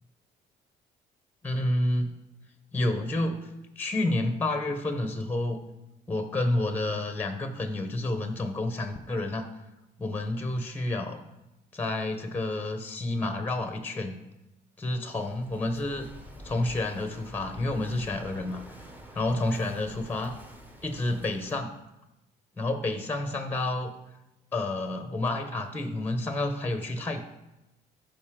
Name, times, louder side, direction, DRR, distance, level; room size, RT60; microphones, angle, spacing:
voice 1, 1.4-2.1 2.7-3.5 3.8-5.6 6.1-9.4 10.0-11.2 11.7-14.2 14.8-16.1 16.4-18.6 19.1-20.4 20.8-21.7 22.6-23.9 24.5-27.2, left 2 dB, 10° left, 6 dB, 0.9 m, -29 dB
Walk footsteps / Wind / Waves surf, 15.0-21.6, equal, 10° right, 1.1 m, -48 dB
14.0 x 5.3 x 3.7 m, 0.95 s
cardioid pair, 110°, 17 cm